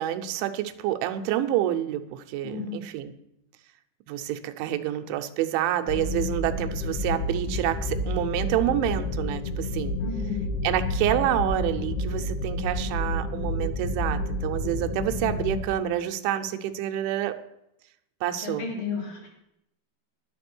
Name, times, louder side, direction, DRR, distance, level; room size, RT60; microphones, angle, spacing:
voice 1, 0.0-3.1 4.1-10.0 10.6-17.4 18.2-18.7, right 12 dB, 85° right, 7 dB, 3.1 m, -28 dB
voice 2, 2.4-2.7 10.0-10.5 18.4-19.3, left 6 dB, 45° left, -2 dB, 4.2 m, -33 dB
sound 1, 5.9-15.6, left 1 dB, 80° left, 3.3 m, -30 dB
10.5 x 10.0 x 6.1 m, 0.82 s
omnidirectional pair, 5.4 m